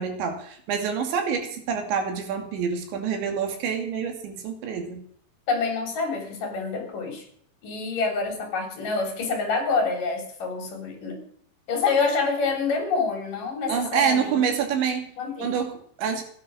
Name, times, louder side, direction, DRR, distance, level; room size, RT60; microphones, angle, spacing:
voice 1, 0.0-5.0 13.7-15.0 15.4-16.2, right 7 dB, 85° right, 5 dB, 4.8 m, -27 dB
voice 2, 5.5-7.3 7.6-11.2 11.7-14.4 15.2-15.6, left 4 dB, 50° left, 4 dB, 4.6 m, -27 dB
16.5 x 11.0 x 6.2 m, 0.62 s
omnidirectional pair, 5.1 m